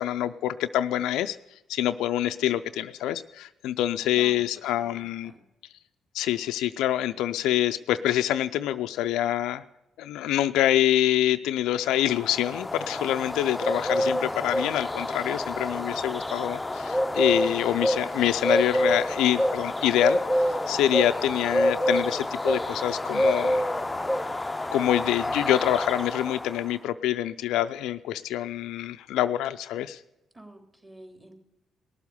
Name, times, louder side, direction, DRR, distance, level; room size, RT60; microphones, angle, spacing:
voice 1, 0.0-1.4 1.7-5.3 6.1-9.6 10.0-20.2 20.7-23.6 24.7-30.0, left 12 dB, 75° left, 11 dB, 0.4 m, -26 dB
voice 2, 4.1-4.4 4.7-5.4 30.3-31.3, right 1 dB, 20° right, 3 dB, 3.5 m, -48 dB
sound 1, 12.0-26.6, left 1 dB, 15° left, 0.6 m, -27 dB
18.5 x 7.3 x 6.9 m, 0.95 s
hypercardioid pair, 45°, 0 cm